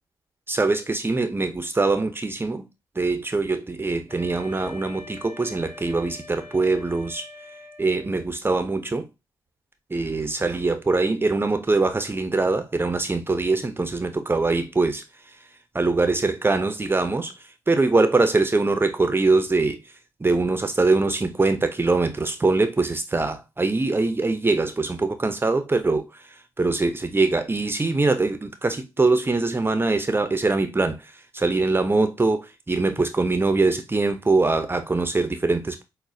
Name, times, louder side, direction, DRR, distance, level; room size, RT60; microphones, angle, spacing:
voice 1, 0.5-2.7 3.0-7.3 7.8-9.1 9.9-15.4 15.7-19.9 20.2-35.8, right 3 dB, 25° right, 0.6 m, -23 dB
Wind instrument woodwind instrument, 4.1-8.3, left 3 dB, 50° left, 1.2 m, -44 dB
6.0 x 2.1 x 2.6 m
hypercardioid pair, 45°, 10 cm